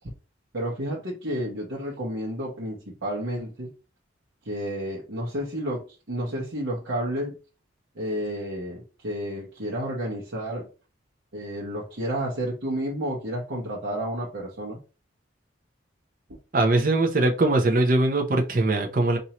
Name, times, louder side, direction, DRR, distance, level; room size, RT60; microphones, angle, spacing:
voice 1, 0.5-3.7 4.4-7.4 7.9-10.7 11.3-14.8, equal, 75° right, 0.9 m, -31 dB
voice 2, 16.5-19.2, right 2 dB, 45° right, 0.6 m, -21 dB
4.3 x 2.7 x 2.9 m
head